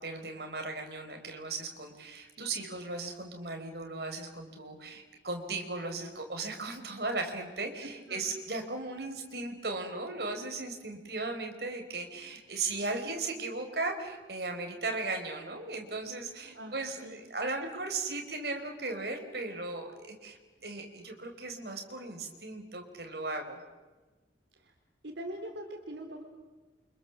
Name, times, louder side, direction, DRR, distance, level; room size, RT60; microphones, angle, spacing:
voice 1, 0.0-23.6, right 3 dB, 60° right, 4 dB, 4.9 m, -37 dB
voice 2, 2.4-2.9 7.8-8.2 16.5-17.2 17.6-17.7 24.6-24.7 25.0-26.2, right 1 dB, 80° right, 3 dB, 3.5 m, -43 dB
29.0 x 26.5 x 7.5 m, 1.2 s
head